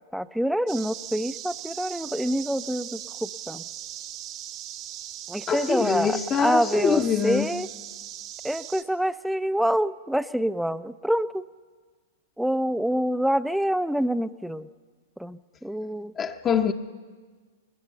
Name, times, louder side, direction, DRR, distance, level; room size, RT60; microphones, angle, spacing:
voice 1, 0.1-3.7 5.3-7.7 8.4-11.5 12.4-14.7 15.2-16.1, equal, ahead, 0.5 m, -26 dB
sound 1, 0.7-8.8, right 11 dB, 40° right, 1.1 m, -39 dB
voice 2, 5.5-7.5 16.2-16.7, left 7 dB, 25° left, 0.8 m, -24 dB
21.5 x 20.0 x 6.9 m
hypercardioid pair, 110°, 0 cm